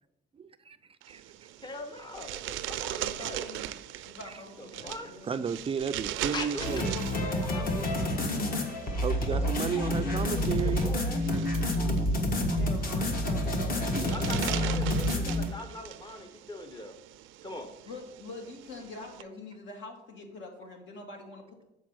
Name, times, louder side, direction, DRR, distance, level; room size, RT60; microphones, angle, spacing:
voice 1, 0.3-0.8 1.1-1.2 2.3-2.4 2.8-3.0 4.0-4.3 5.3-7.0 9.0-10.9, right 6 dB, 30° right, 10 dB, 0.3 m, -33 dB
sound 1, 1.0-19.2, right 13 dB, 85° right, 0.5 m, -41 dB
voice 2, 1.6-3.5 4.6-5.1 6.3-6.9 7.4-8.6 9.3-11.2 14.0-16.9 17.4-17.7, left 2 dB, 20° left, 7 dB, 0.7 m, -42 dB
voice 3, 3.0-5.3 6.9-8.1 12.5-15.3 17.9-21.6, left 2 dB, 75° left, 2 dB, 1.9 m, -45 dB
sound 2, 6.6-15.4, left 1 dB, 45° left, 1.4 m, -28 dB
7.3 x 4.5 x 6.2 m, 0.88 s
cardioid pair, 125°, 20 cm